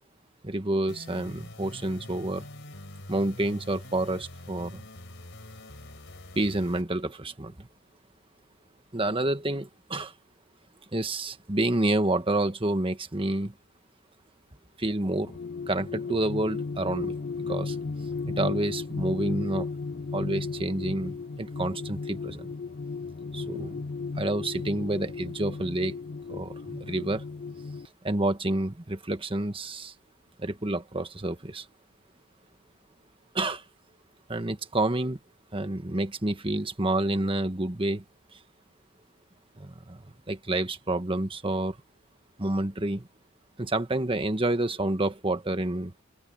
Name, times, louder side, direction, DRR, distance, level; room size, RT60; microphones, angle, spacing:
voice 1, 0.4-2.4 3.1-4.8 6.3-7.7 8.9-10.1 10.9-13.5 14.8-15.3 15.7-17.2 17.5-17.8 18.3-19.7 20.1-22.5 23.3-23.8 24.1-26.0 26.3-27.2 28.0-29.9 30.4-31.6 33.3-33.6 34.3-35.2 35.5-38.0 39.6-41.8 42.4-43.1 43.6-45.9, right 1 dB, 25° right, 1.5 m, -29 dB
sound 1, 0.9-6.8, left 1 dB, 60° left, 4.7 m, -45 dB
sound 2, 15.1-27.9, left 4 dB, 45° left, 0.5 m, -35 dB
open air
head